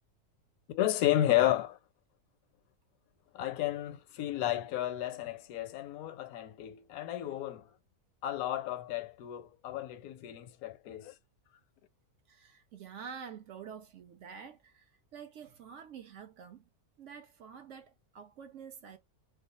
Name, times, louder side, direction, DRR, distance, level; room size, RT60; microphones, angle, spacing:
voice 1, 0.7-1.8 3.3-7.7 8.2-11.1, left 13 dB, 75° left, 1.0 m, -32 dB
voice 2, 12.3-16.7 17.0-19.0, right 7 dB, 65° right, 0.8 m, -48 dB
2.5 x 2.3 x 4.1 m
omnidirectional pair, 1.6 m